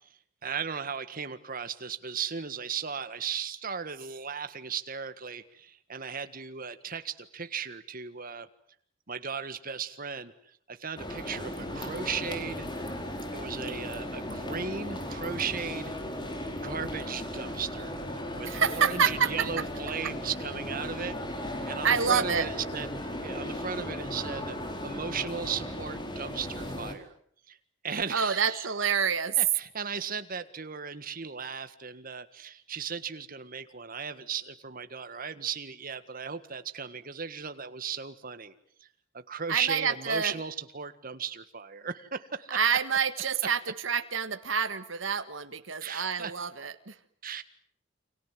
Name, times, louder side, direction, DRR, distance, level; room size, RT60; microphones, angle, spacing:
voice 1, 0.4-8.5 9.1-10.3 10.7-12.7 13.3-15.9 16.6-22.9 23.2-24.6 24.8-27.1 27.5-27.6 27.8-28.7 29.4-38.5 38.8-38.9 39.1-42.5 45.8-46.3 47.2-47.4, right 6 dB, 50° right, 11 dB, 1.7 m, -36 dB
sound 1, 11.0-26.9, left 1 dB, 25° left, 4.5 m, -36 dB
voice 2, 18.4-19.6 21.8-22.5 28.1-29.4 39.5-40.3 42.5-47.0, right 6 dB, 85° right, 9 dB, 1.6 m, -28 dB
29.5 x 25.5 x 7.7 m, 0.63 s
head